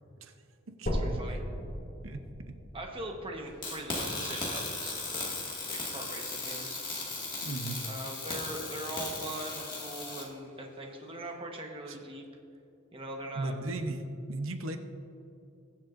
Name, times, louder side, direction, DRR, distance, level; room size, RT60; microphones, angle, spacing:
voice 1, 0.8-1.4 2.7-5.3 5.7-6.8 7.8-12.2 12.9-13.5, right 1 dB, 25° right, 1 dB, 1.2 m, -41 dB
sound 1, 0.9-4.9 5.4-5.5 6.1-6.2 6.5-6.6 7.4-7.5, equal, 45° left, 2.4 m, -37 dB
sound 2, 3.6-10.2, left 3 dB, 25° left, 2.0 m, -37 dB
voice 2, 7.4-7.8 11.9-12.0 13.3-14.8, right 2 dB, 75° right, 6 dB, 0.8 m, -36 dB
21.5 x 7.4 x 2.6 m, 2.6 s
head